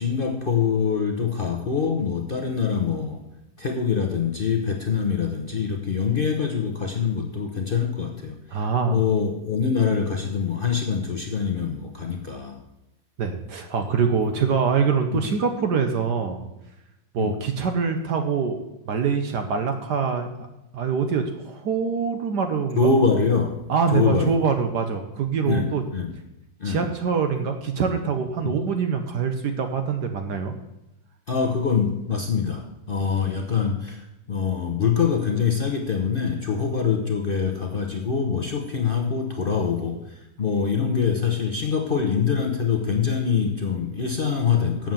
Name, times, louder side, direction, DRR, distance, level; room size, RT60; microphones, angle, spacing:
voice 1, 0.0-3.2 3.6-12.6 15.1-15.2 17.2-17.3 22.8-23.5 23.9-24.4 25.4-26.1 26.6-26.8 28.4-28.5 31.3-44.9, left 6 dB, 55° left, 3 dB, 0.6 m, -24 dB
voice 2, 8.5-9.0 13.2-16.4 17.1-18.6 18.8-20.5 20.7-22.9 23.7-25.8 26.6-30.6, right 6 dB, 65° right, 6 dB, 1.3 m, -24 dB
7.6 x 7.4 x 7.3 m, 0.94 s
omnidirectional pair, 2.1 m